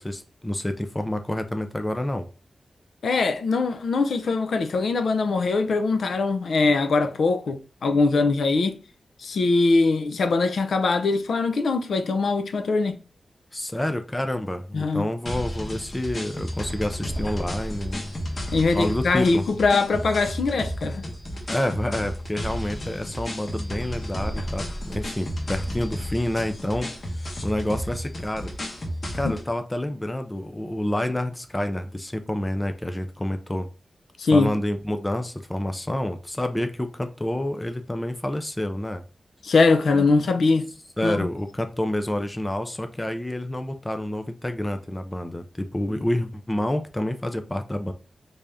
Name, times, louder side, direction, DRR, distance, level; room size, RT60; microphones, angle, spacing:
voice 1, 0.0-2.3 13.5-18.1 18.7-19.4 21.5-26.9 27.4-28.5 29.1-33.7 34.3-39.0 41.0-47.9, left 1 dB, 15° left, 0.3 m, -28 dB
voice 2, 3.0-8.7 9.2-13.0 14.7-15.1 18.5-21.0 29.2-29.3 34.2-34.5 39.4-40.7 41.0-41.2, left 3 dB, 75° left, 0.4 m, -22 dB
sound 1, 15.3-29.5, equal, 40° left, 0.9 m, -32 dB
3.3 x 2.6 x 3.4 m
wide cardioid pair, 145°, 0 cm